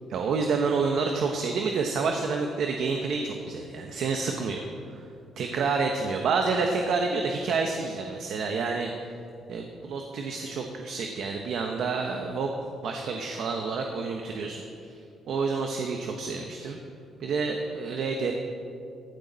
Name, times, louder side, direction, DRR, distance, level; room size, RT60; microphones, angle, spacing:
voice 1, 0.1-5.1 5.4-9.2 9.5-12.5 12.8-15.0 15.3-16.8 17.2-18.3, right 4 dB, 70° right, 3 dB, 1.0 m, -29 dB
15.0 x 12.5 x 4.1 m, 2.6 s
cardioid pair, 90°, 0 cm